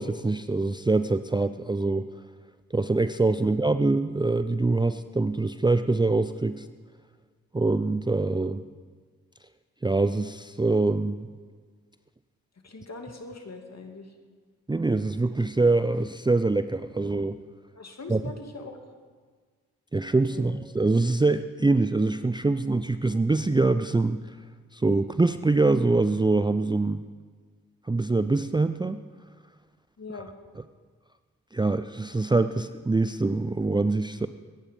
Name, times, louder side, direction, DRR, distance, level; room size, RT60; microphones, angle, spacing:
voice 1, 0.0-2.1 2.7-6.7 7.5-8.6 9.8-11.3 14.7-17.4 18.1-18.2 19.9-24.2 24.7-27.0 27.9-29.0 31.5-34.3, right 3 dB, 15° right, 11 dB, 0.5 m, -24 dB
voice 2, 12.6-14.1 17.8-18.8 20.3-20.5 30.0-30.4, left 3 dB, 45° left, 4 dB, 2.6 m, -41 dB
22.5 x 9.9 x 5.3 m, 1.5 s
supercardioid pair, 40°, 36 cm